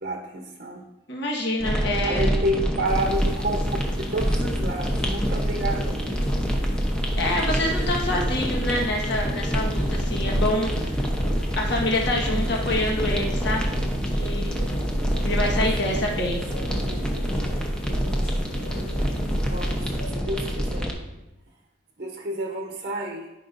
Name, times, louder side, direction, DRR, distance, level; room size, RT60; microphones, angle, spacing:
voice 1, 0.0-0.8 2.0-3.7 4.0-6.2 15.8-16.1 16.6-17.4 19.0-21.2 22.0-23.3, right 1 dB, 45° right, 1 dB, 0.9 m, -31 dB
voice 2, 1.1-2.3 7.1-11.0 11.6-13.7 14.1-14.6 15.2-16.4, left 1 dB, 55° left, -1 dB, 1.4 m, -26 dB
sound 1, 1.6-20.9, equal, 5° left, 0.8 m, -26 dB
sound 2, 2.8-20.1, equal, 85° left, 1.5 m, -41 dB
13.5 x 5.1 x 2.6 m, 0.97 s
head